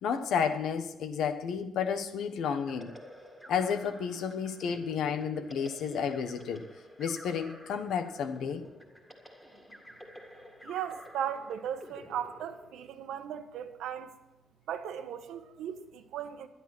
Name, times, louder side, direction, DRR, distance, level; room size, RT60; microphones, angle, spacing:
voice 1, 0.0-2.9 3.5-6.7 7.0-8.6, left 7 dB, 60° left, 1.2 m, -31 dB
sound 1, 2.5-13.1, equal, 5° left, 2.0 m, -51 dB
voice 2, 10.6-14.1 14.7-16.5, right 9 dB, 85° right, 1.2 m, -37 dB
11.5 x 11.0 x 6.1 m
cardioid pair, 180°, 0 cm